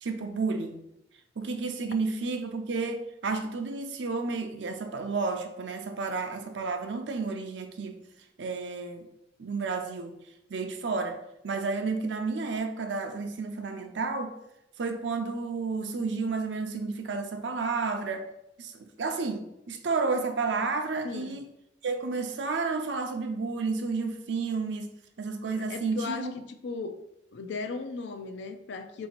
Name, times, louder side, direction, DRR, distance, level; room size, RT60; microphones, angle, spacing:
voice 1, 0.0-0.8 1.4-8.0 8.4-9.1 9.4-10.2 10.5-14.3 14.8-18.3 18.6-21.5 21.8-26.3, right 4 dB, 70° right, 6 dB, 0.5 m, -31 dB
voice 2, 21.0-21.4 25.5-27.0 27.3-29.1, left 4 dB, 70° left, 8 dB, 0.4 m, -37 dB
3.9 x 2.7 x 4.3 m, 0.83 s
head